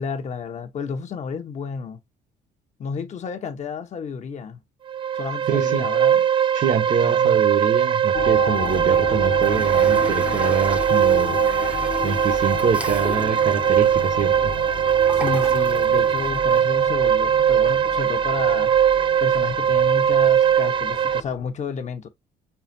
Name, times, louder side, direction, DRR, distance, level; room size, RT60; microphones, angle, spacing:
voice 1, 0.0-2.0 2.8-4.6 5.1-6.2 7.0-7.3 15.1-18.7 19.2-22.1, left 5 dB, 45° left, 0.9 m, -31 dB
sound 1, 4.9-21.2, right 9 dB, 30° right, 0.3 m, -20 dB
voice 2, 5.5-5.9 6.5-14.5, right 7 dB, 50° right, 1.0 m, -25 dB
sound 2, 8.1-21.5, left 4 dB, 65° left, 1.1 m, -33 dB
Toilet flush, 8.4-16.6, right 1 dB, 10° right, 0.7 m, -39 dB
5.6 x 2.4 x 2.7 m
cardioid pair, 110°, 17 cm